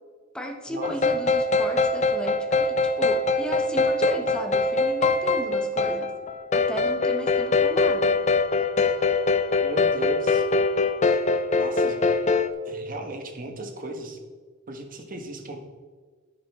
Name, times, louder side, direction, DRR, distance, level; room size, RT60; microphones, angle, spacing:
voice 1, 0.3-6.1 6.5-8.2, equal, 5° left, 2 dB, 1.0 m, -35 dB
sound 1, 0.8-12.5, left 3 dB, 35° left, 0.5 m, -23 dB
voice 2, 9.6-10.5 11.6-12.1 12.6-14.2 14.7-15.6, right 2 dB, 40° right, 4 dB, 1.4 m, -36 dB
10.5 x 8.6 x 3.6 m, 1.5 s
head